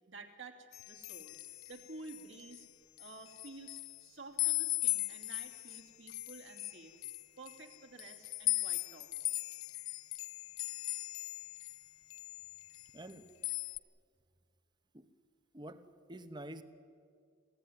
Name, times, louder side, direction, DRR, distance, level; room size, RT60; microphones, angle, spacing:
voice 1, 0.1-2.7 3.0-6.9 7.4-9.3, right 3 dB, 65° right, 4 dB, 2.7 m, -52 dB
sound 1, 0.7-2.6 3.0-4.0 4.4-11.8 12.1-13.1 13.4-13.8, left 20 dB, 85° left, 0.7 m, -38 dB
voice 2, 12.9-13.3 14.9-15.1 15.5-16.6, right 1 dB, 20° right, 10 dB, 1.1 m, -48 dB
26.5 x 16.5 x 9.7 m, 2.2 s
head